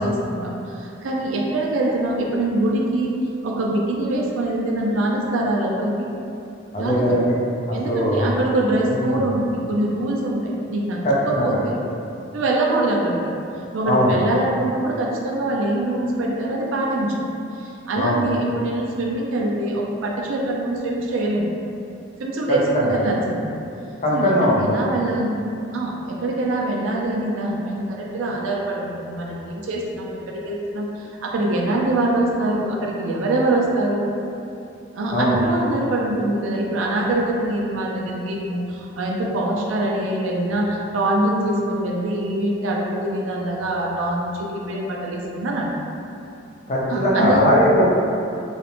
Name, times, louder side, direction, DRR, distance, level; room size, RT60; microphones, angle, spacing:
voice 1, 0.0-3.1 3.4-5.9 6.8-7.1 7.7-11.8 12.3-13.2 13.7-21.5 22.2-23.5 24.1-25.4 25.7-34.0 34.9-45.7 46.9-47.5, right 1 dB, 85° right, -2 dB, 0.4 m, -24 dB
voice 2, 6.7-7.3 7.7-8.3 8.9-9.2 11.0-11.6 13.9-14.2 17.9-18.2 22.5-22.9 24.0-24.8 35.1-35.4 46.7-47.9, equal, 35° left, -5 dB, 0.4 m, -20 dB
2.4 x 2.0 x 2.9 m, 2.7 s
head